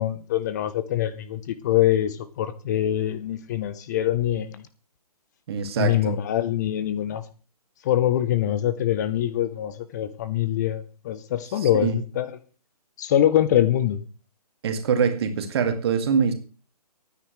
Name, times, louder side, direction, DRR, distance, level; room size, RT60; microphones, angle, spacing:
voice 1, 0.0-4.6 5.8-7.2 7.8-12.3 13.0-14.0, left 11 dB, 25° left, 0.8 m, -24 dB
voice 2, 5.5-6.2 11.6-12.0 14.6-16.3, right 6 dB, 40° right, 2.2 m, -24 dB
24.5 x 9.6 x 3.2 m
figure-of-eight pair, 145°, 21 cm